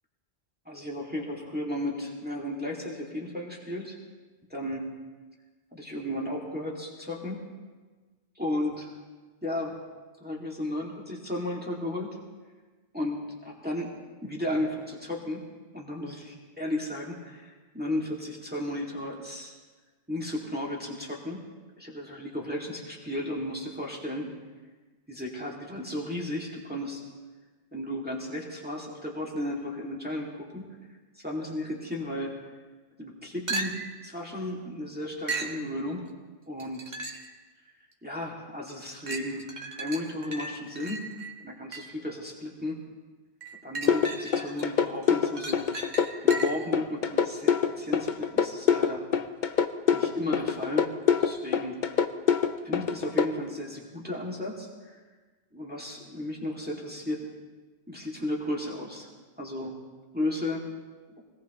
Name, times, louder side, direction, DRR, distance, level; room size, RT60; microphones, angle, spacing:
voice 1, 0.7-4.0 4.5-4.8 5.7-7.4 8.4-8.9 9.4-9.8 10.2-12.2 12.9-13.9 14.2-15.4 15.7-19.5 20.1-21.4 21.8-24.3 25.1-27.0 27.7-30.7 31.1-32.3 33.0-36.1 36.5-36.8 38.0-39.4 39.8-41.1 41.4-42.8 43.6-45.7 46.2-49.0 49.9-50.9 51.2-51.8 52.6-55.0 55.5-57.3 57.9-59.1 59.4-59.7 60.1-60.7, left 1 dB, 10° right, -3 dB, 2.2 m, -34 dB
sound 1, 33.5-34.0 35.3-35.6 36.6-37.3 37.9-38.0 39.1-42.0 43.4-44.6 45.0-46.7 50.5-50.6, right 2 dB, 40° right, 1.5 m, -36 dB
sound 2, 43.9-53.3, left 7 dB, 50° left, 0.8 m, -24 dB
24.5 x 18.5 x 3.0 m, 1.3 s
omnidirectional pair, 1.1 m